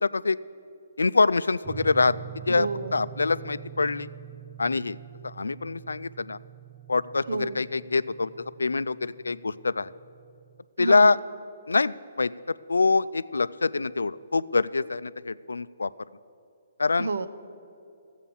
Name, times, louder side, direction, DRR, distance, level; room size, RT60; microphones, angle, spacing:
voice 1, 0.0-0.4 1.0-2.1 2.5-4.1 4.6-5.0 5.2-6.4 6.9-8.3 8.6-9.9 10.8-11.2 11.7-12.3 12.7-15.9 16.8-17.1, left 3 dB, 90° left, 17 dB, 0.3 m, -25 dB
sound 1, 1.6-10.6, right 11 dB, 25° right, 0.8 m, -45 dB
voice 2, 2.5-3.0 7.3-7.6 10.8-11.2 17.0-17.3, right 3 dB, 75° right, 11 dB, 0.7 m, -30 dB
12.5 x 8.2 x 7.0 m, 2.6 s
hypercardioid pair, 145°, 0 cm